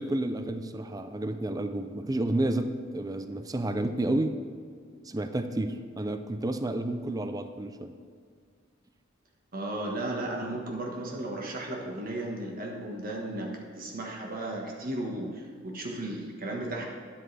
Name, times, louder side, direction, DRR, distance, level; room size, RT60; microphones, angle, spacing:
voice 1, 0.0-4.4 5.1-7.9, right 1 dB, 20° right, 9 dB, 0.5 m, -30 dB
voice 2, 9.5-16.8, right 1 dB, 45° right, 0 dB, 1.4 m, -35 dB
12.0 x 10.0 x 3.3 m, 2.1 s
head